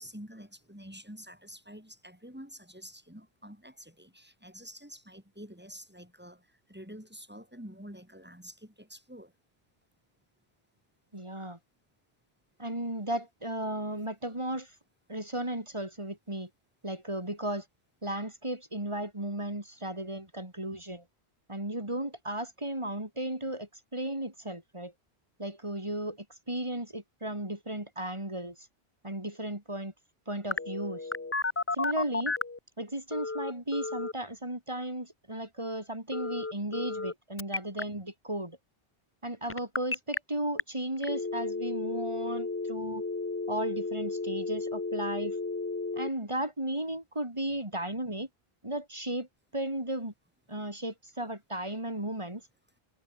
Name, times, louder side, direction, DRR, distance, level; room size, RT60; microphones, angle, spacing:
voice 1, 0.0-9.3, equal, 10° right, 7.2 m, -48 dB
voice 2, 11.1-11.6 12.6-14.7 15.1-16.5 16.8-17.6 18.0-21.0 21.5-24.9 25.4-26.2 26.5-28.6 29.0-29.9 30.3-31.1 31.7-32.4 32.8-38.6 39.2-43.0 43.5-45.4 46.0-48.3 48.6-49.3 49.5-50.1 50.5-52.4, right 1 dB, 30° right, 3.8 m, -35 dB
Telephone, 30.5-32.6 33.1-34.1 36.1-37.1 37.4-37.8 39.5-40.2 40.6-40.7 41.0-46.1, left 3 dB, 25° left, 0.3 m, -33 dB
omnidirectional pair, 1.1 m